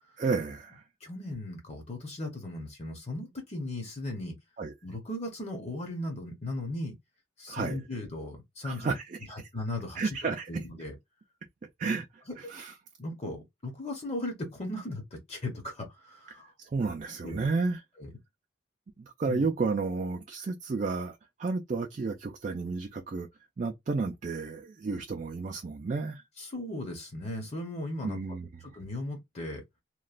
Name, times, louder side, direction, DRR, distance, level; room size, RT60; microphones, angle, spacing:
voice 1, 0.2-0.8 4.6-4.7 7.5-7.8 8.6-9.5 10.0-10.6 11.8-12.7 16.6-17.8 19.0-23.3 23.6-26.2 28.0-28.5, right 4 dB, 40° right, 0.3 m, -32 dB
voice 2, 1.0-4.4 4.8-6.9 7.4-8.9 9.3-10.2 10.5-10.9 13.0-16.5 17.2-17.4 18.0-18.1 19.3-19.5 26.4-28.2 28.6-29.6, left 1 dB, 35° left, 0.8 m, -37 dB
2.9 x 2.2 x 2.4 m
head